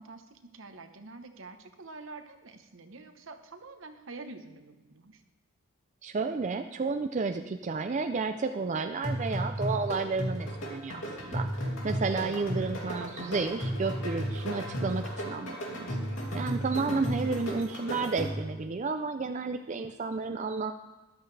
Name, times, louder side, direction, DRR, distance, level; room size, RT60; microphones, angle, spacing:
voice 1, 0.0-5.2 12.8-13.2 16.7-18.1, right 3 dB, 70° right, 8 dB, 1.0 m, -46 dB
voice 2, 6.0-16.0 16.3-20.7, right 4 dB, 35° right, 7 dB, 0.4 m, -32 dB
sound 1, 9.0-18.6, equal, 70° left, 2.8 m, -34 dB
13.5 x 11.5 x 3.3 m, 1.1 s
head